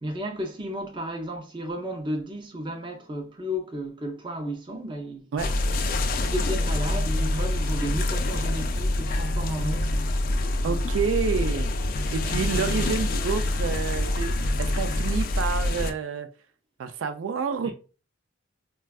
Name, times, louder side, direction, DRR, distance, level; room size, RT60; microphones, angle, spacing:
voice 1, 0.0-5.3 6.2-10.3 10.6-10.9 12.2-12.3, equal, 25° right, 0.5 m, -33 dB
sound 1, 5.4-15.9, left 1 dB, 45° left, 0.3 m, -26 dB
voice 2, 10.6-11.7 12.1-16.3 16.8-17.7, right 6 dB, 80° right, 0.3 m, -29 dB
4.1 x 2.3 x 2.3 m
head